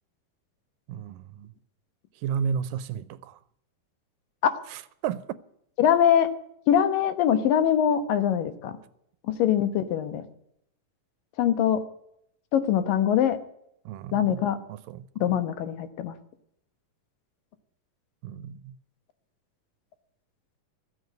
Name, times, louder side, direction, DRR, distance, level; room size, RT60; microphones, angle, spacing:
voice 1, 0.9-1.5 2.2-3.4 4.7-5.2 13.9-14.4 14.7-15.0 18.2-18.7, right 7 dB, 90° right, 2.4 m, -33 dB
voice 2, 5.8-6.3 6.7-8.8 9.3-10.2 11.4-11.8 12.5-13.4 14.1-14.6 15.2-16.1, left 9 dB, 85° left, 2.9 m, -23 dB
14.0 x 8.0 x 9.2 m
omnidirectional pair, 3.9 m